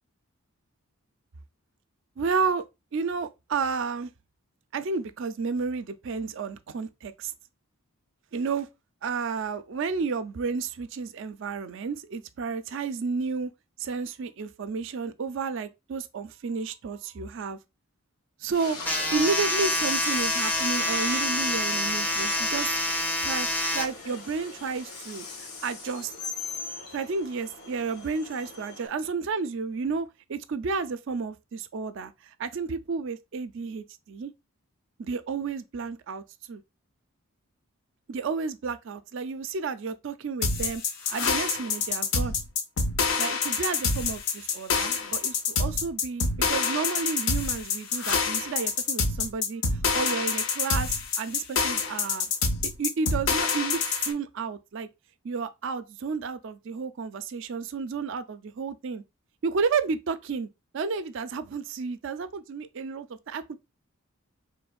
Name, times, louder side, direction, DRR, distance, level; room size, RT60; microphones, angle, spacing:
voice 1, 2.2-2.6 2.9-4.1 4.7-7.3 8.3-8.7 9.0-13.5 13.8-17.6 18.4-18.8 19.1-22.7 23.2-23.5 23.7-26.1 26.9-32.1 32.4-34.3 35.0-36.6 38.1-40.8 41.1-42.4 43.2-49.6 49.9-52.3 52.8-54.9 55.2-59.0 59.4-60.5 60.7-63.6, right 5 dB, 55° right, 0.4 m, -31 dB
Train, 18.5-28.9, left 4 dB, 85° left, 1.0 m, -39 dB
sound 1, 18.8-23.9, left 1 dB, 10° left, 0.4 m, -27 dB
sound 2, 40.4-54.1, left 4 dB, 60° left, 0.6 m, -27 dB
4.2 x 3.1 x 2.3 m
head